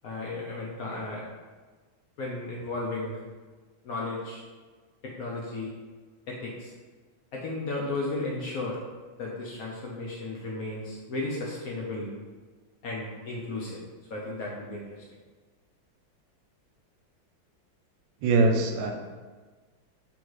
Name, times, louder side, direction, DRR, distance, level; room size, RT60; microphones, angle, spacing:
voice 1, 0.0-1.2 2.2-3.2 3.8-4.4 5.0-5.7 6.3-6.7 7.3-8.8 9.2-12.1 12.8-13.8 14.1-14.8, left 2 dB, 75° left, -4 dB, 0.8 m, -34 dB
voice 2, 18.2-18.9, right 3 dB, 75° right, 3 dB, 1.2 m, -22 dB
3.6 x 2.6 x 4.6 m, 1.4 s
omnidirectional pair, 2.2 m